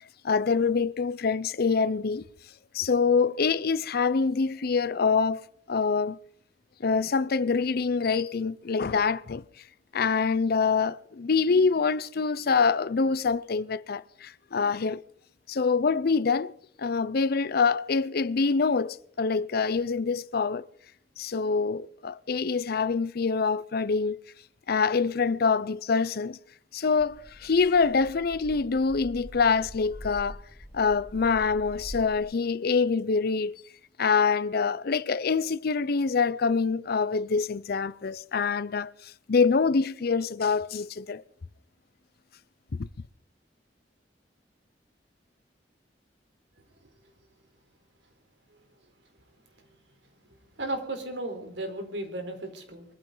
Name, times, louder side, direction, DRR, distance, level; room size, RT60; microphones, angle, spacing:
voice 1, 0.0-2.2 2.7-5.4 5.7-6.2 6.8-9.4 9.9-15.0 15.5-16.5 16.8-20.6 21.2-24.2 24.7-26.4 26.7-30.4 30.7-33.5 34.0-41.2 42.8-42.9, left 5 dB, 60° left, 0.6 m, -25 dB
sound 1, 27.0-32.2, equal, 30° left, 6.3 m, -44 dB
voice 2, 50.6-52.9, right 1 dB, 80° right, 3.9 m, -35 dB
23.0 x 15.0 x 3.9 m
head